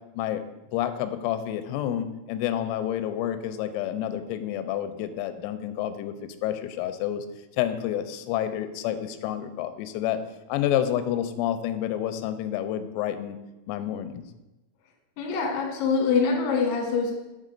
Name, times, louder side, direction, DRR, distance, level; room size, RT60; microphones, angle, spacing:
voice 1, 0.7-7.3 7.6-10.2 10.5-13.4 13.7-14.2, left 11 dB, 90° left, 10 dB, 3.3 m, -29 dB
voice 2, 15.2-17.1, left 5 dB, 70° left, 0 dB, 2.2 m, -24 dB
7.4 x 4.0 x 4.9 m, 1.0 s
omnidirectional pair, 6.0 m